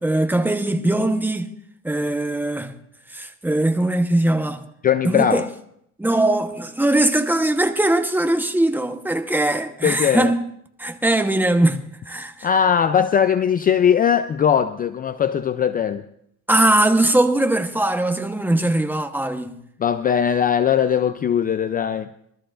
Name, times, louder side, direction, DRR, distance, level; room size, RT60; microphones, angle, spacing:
voice 1, 0.0-1.5 1.8-2.7 3.1-4.6 5.0-5.4 6.0-10.4 10.8-12.5 16.5-19.6, right 1 dB, 5° right, 1.0 m, -20 dB
voice 2, 4.8-5.5 9.8-10.3 12.4-16.0 19.8-22.1, left 8 dB, 30° left, 0.5 m, -19 dB
22.5 x 13.5 x 2.5 m
cardioid pair, 110°, 30 cm